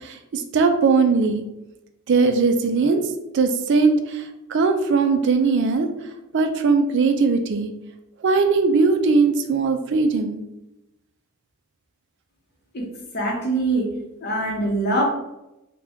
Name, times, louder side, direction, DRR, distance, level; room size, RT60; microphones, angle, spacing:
voice 1, 0.0-1.4 2.1-3.0 3.3-4.2 4.5-5.9 6.3-7.7 8.2-10.4, right 4 dB, 55° right, 6 dB, 0.3 m, -19 dB
voice 2, 13.1-13.9 14.2-15.0, right 2 dB, 45° left, 0 dB, 0.7 m, -23 dB
2.8 x 2.2 x 3.4 m, 0.91 s
head